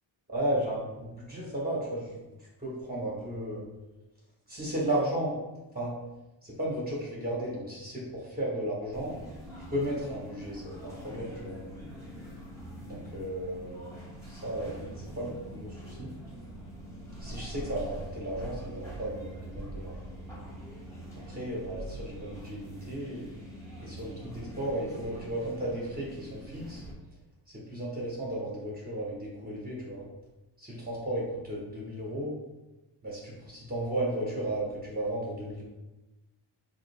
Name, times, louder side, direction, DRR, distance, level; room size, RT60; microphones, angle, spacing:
voice 1, 0.3-3.6 4.5-5.4 5.7-6.0 6.4-9.2 9.7-11.6 12.9-16.1 17.2-20.1 21.3-23.3 23.8-26.8 27.5-30.0 30.6-32.3 33.0-35.6, right 1 dB, 20° right, -5 dB, 1.1 m, -34 dB
sound 1, 8.9-26.9, right 1 dB, 5° left, 1.1 m, -44 dB
3.7 x 2.8 x 3.2 m, 1.0 s
cardioid pair, 90°, 48 cm